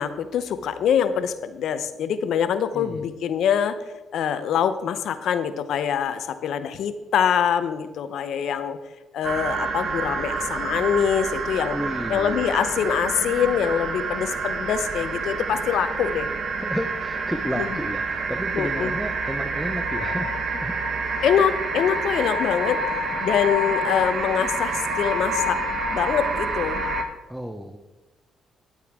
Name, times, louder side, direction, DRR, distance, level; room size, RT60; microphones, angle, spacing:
voice 1, 0.0-8.8 9.1-11.7 12.1-16.3 17.6-17.7 18.5-18.9 21.2-22.8 23.2-25.6 25.9-26.8, left 8 dB, 75° left, 12 dB, 0.7 m, -24 dB
voice 2, 2.7-3.1 11.7-12.5 16.6-20.8 21.2-21.3 27.3-27.8, equal, ahead, 6 dB, 0.6 m, -32 dB
sound 1, 9.2-27.0, right 2 dB, 55° right, 1.1 m, -28 dB
10.5 x 8.3 x 3.6 m, 1.1 s
cardioid pair, 90°, 0 cm